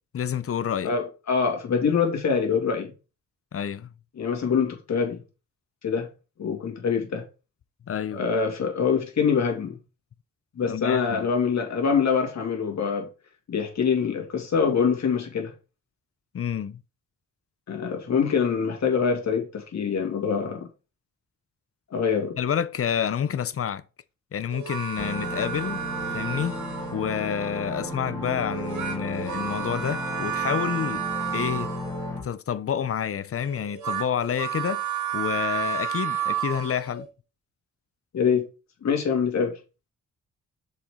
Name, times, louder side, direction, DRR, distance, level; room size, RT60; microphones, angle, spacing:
voice 1, 0.1-0.9 3.5-3.9 7.9-8.3 10.7-11.3 16.3-16.8 22.4-23.8 24.3-25.8 26.1-26.6 26.9-31.0 31.3-31.7 32.2-34.8 35.1-37.1, left 8 dB, 50° left, 0.6 m, -28 dB
voice 2, 0.8-2.9 4.2-5.2 5.8-6.1 6.4-7.3 8.1-9.8 10.6-13.1 13.5-15.5 17.7-20.7 21.9-22.4 38.1-38.5 38.8-39.6, left 6 dB, 65° left, 2.3 m, -24 dB
sound 1, 24.5-27.1 28.5-32.2 33.4-37.1, right 9 dB, 80° right, 1.6 m, -31 dB
sound 2, 25.0-32.2, equal, 10° left, 2.9 m, -34 dB
6.7 x 4.9 x 3.7 m
cardioid pair, 80°, 29 cm